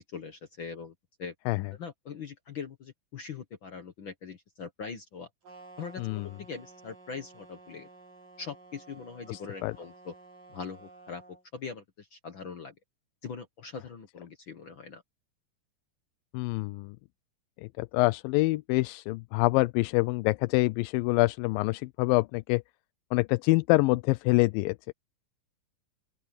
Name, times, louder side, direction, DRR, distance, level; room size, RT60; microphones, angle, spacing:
voice 1, 0.1-0.9 1.2-1.3 1.8-5.3 5.8-7.9 8.4-10.1 10.5-11.2 11.5-12.7 13.2-15.0, left 5 dB, 60° left, 1.3 m, -41 dB
sound 1, 5.4-11.4, right 3 dB, 70° right, 9.0 m, -53 dB
voice 2, 9.3-9.7 16.3-17.0 17.6-22.6 23.1-24.9, left 22 dB, 85° left, 2.3 m, -26 dB
open air
omnidirectional pair, 4.0 m